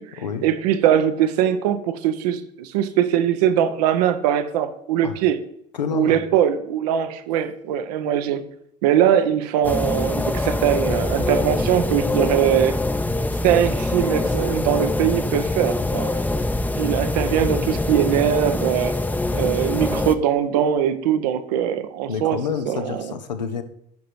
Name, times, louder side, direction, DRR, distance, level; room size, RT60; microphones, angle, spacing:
voice 1, 0.0-5.4 5.9-8.4 8.8-12.8 13.4-16.2 16.8-19.0 19.3-22.4 22.7-23.1, right 10 dB, 70° right, 10 dB, 0.9 m, -21 dB
voice 2, 5.7-6.2 22.1-23.6, left 7 dB, 90° left, 8 dB, 0.9 m, -28 dB
sound 1, 9.6-20.1, left 2 dB, 10° left, 0.7 m, -24 dB
9.5 x 5.2 x 4.6 m, 0.73 s
hypercardioid pair, 70°, 21 cm